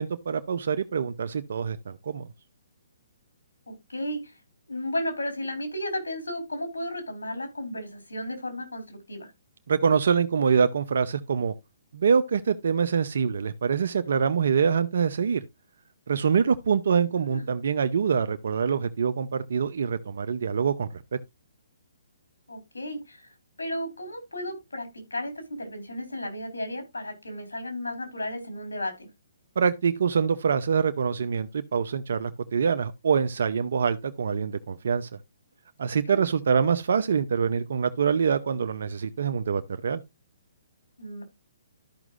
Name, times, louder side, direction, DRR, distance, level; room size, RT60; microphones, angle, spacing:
voice 1, 0.0-2.3 9.7-11.5 11.9-15.4 16.1-21.0 29.6-35.1 35.8-40.0, right 6 dB, 65° right, 0.7 m, -25 dB
voice 2, 3.7-4.4 4.7-9.3 17.1-17.5 22.5-23.3 23.6-29.1 36.1-36.2 41.0-41.2, left 1 dB, 90° left, 4.2 m, -34 dB
13.0 x 6.0 x 2.5 m
hypercardioid pair, 140°, 0 cm